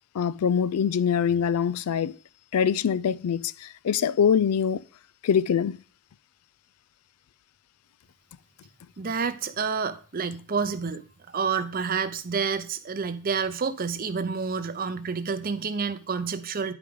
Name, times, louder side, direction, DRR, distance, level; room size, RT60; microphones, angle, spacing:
voice 1, 0.1-2.1 2.5-4.8 5.2-5.8, left 7 dB, 80° left, 0.4 m, -24 dB
voice 2, 9.0-16.7, right 5 dB, 40° right, 0.6 m, -29 dB
10.0 x 5.0 x 3.4 m
head